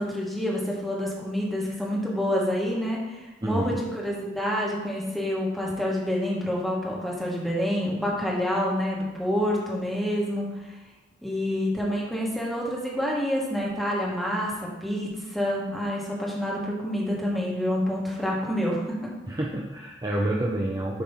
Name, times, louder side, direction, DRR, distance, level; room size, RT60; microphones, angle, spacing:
voice 1, 0.0-10.7 11.2-19.1, equal, ahead, -4 dB, 1.3 m, -28 dB
voice 2, 3.4-3.8 19.3-21.0, right 1 dB, 20° right, -2 dB, 0.5 m, -28 dB
7.0 x 3.2 x 5.5 m, 1.2 s
head